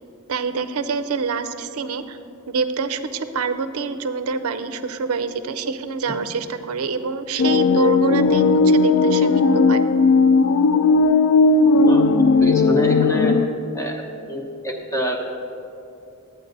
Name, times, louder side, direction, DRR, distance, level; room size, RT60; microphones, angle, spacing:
voice 1, 0.3-2.2 2.5-9.8, right 4 dB, 80° right, 10 dB, 0.5 m, -26 dB
sound 1, 7.4-13.5, left 3 dB, 75° left, 0.4 m, -16 dB
voice 2, 12.4-13.4 13.7-15.3, right 1 dB, 15° left, 1 dB, 1.0 m, -26 dB
11.0 x 9.0 x 3.9 m, 2.7 s
head